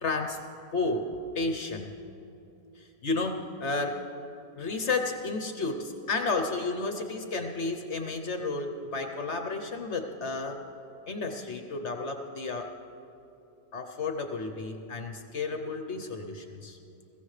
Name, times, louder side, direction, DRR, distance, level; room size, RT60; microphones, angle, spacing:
voice 1, 0.0-0.4 0.7-1.9 2.8-4.1 4.6-10.6 11.1-12.7 13.7-16.8, left 3 dB, 50° left, 5 dB, 0.9 m, -32 dB
22.0 x 15.5 x 3.3 m, 2.8 s
omnidirectional pair, 1.8 m